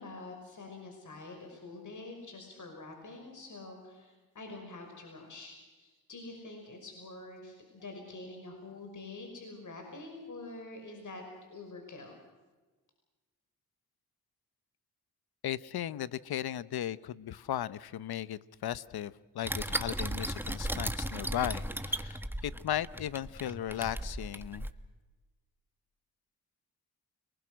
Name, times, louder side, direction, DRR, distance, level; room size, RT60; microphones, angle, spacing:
voice 1, 0.0-11.2 11.5-12.2, left 2 dB, 50° left, 3 dB, 5.8 m, -46 dB
voice 2, 15.4-24.7, left 11 dB, 75° left, 17 dB, 0.9 m, -36 dB
sound 1, 19.4-24.7, right 1 dB, 5° right, 1.4 m, -36 dB
29.5 x 20.0 x 6.3 m, 1.3 s
cardioid pair, 60°, 38 cm